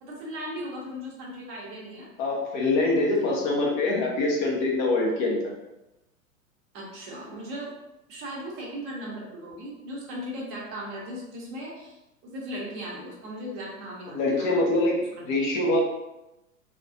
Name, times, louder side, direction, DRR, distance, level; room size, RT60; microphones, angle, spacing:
voice 1, 0.0-2.1 3.3-3.5 6.7-7.7 8.1-12.0 12.2-14.6 15.2-15.3, equal, 30° right, -3 dB, 0.7 m, -37 dB
voice 2, 2.2-5.5 14.1-15.0 15.3-15.8, left 2 dB, 20° left, -2 dB, 0.4 m, -24 dB
2.3 x 2.1 x 2.5 m, 0.95 s
figure-of-eight pair, 95°, 41 cm